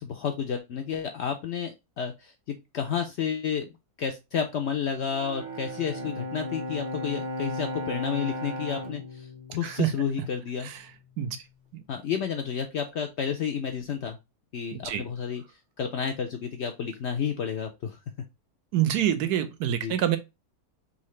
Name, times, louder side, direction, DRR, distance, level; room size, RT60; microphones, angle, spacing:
voice 1, 0.0-3.7 4.0-10.7 11.9-14.2 14.5-18.0 19.8-20.0, left 7 dB, 70° left, 0.6 m, -31 dB
Bowed string instrument, 5.1-10.6, equal, 45° right, 1.0 m, -36 dB
voice 2, 14.7-15.0 18.7-20.2, right 11 dB, 90° right, 1.2 m, -26 dB
3.8 x 2.8 x 3.1 m
omnidirectional pair, 1.6 m